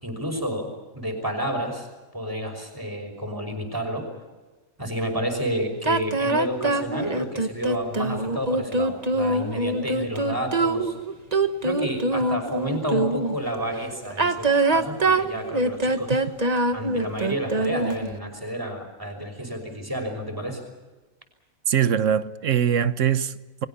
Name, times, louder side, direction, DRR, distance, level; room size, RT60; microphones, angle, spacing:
voice 1, 0.0-1.9 2.1-4.0 4.8-10.9 11.6-16.2 16.7-20.6, equal, 15° right, 5.6 m, -30 dB
sound 1, 5.8-13.4 14.1-18.1, right 2 dB, 30° right, 1.4 m, -24 dB
voice 2, 21.7-23.7, right 8 dB, 65° right, 1.3 m, -22 dB
30.0 x 23.0 x 5.7 m
omnidirectional pair, 1.4 m